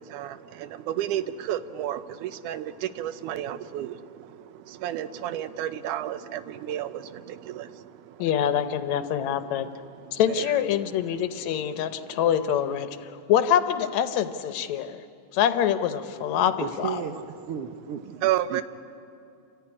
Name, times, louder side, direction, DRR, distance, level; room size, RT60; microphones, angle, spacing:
voice 1, 0.0-13.0 16.2-16.7 17.1-17.2 18.2-18.6, right 12 dB, 85° right, 13 dB, 2.2 m, -34 dB
voice 2, 8.2-9.7 10.1-15.0 15.3-17.0, left 9 dB, 75° left, 10 dB, 2.0 m, -25 dB
voice 3, 16.6-17.2 17.5-18.6, right 7 dB, 70° right, 6 dB, 1.4 m, -34 dB
28.0 x 14.0 x 9.8 m, 2.5 s
omnidirectional pair, 3.5 m